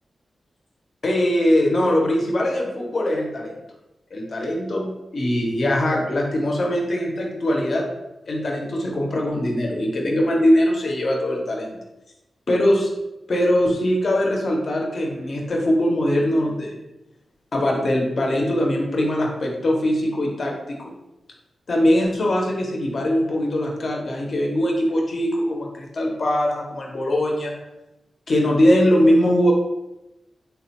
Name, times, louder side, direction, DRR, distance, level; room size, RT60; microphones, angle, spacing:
voice 1, 1.0-3.6 4.1-7.8 8.3-11.8 12.5-12.9 13.3-16.8 17.5-20.9 21.7-27.5 28.3-29.5, left 1 dB, 50° left, 0 dB, 0.5 m, -21 dB
3.4 x 2.0 x 2.8 m, 0.96 s
wide cardioid pair, 130°, 0 cm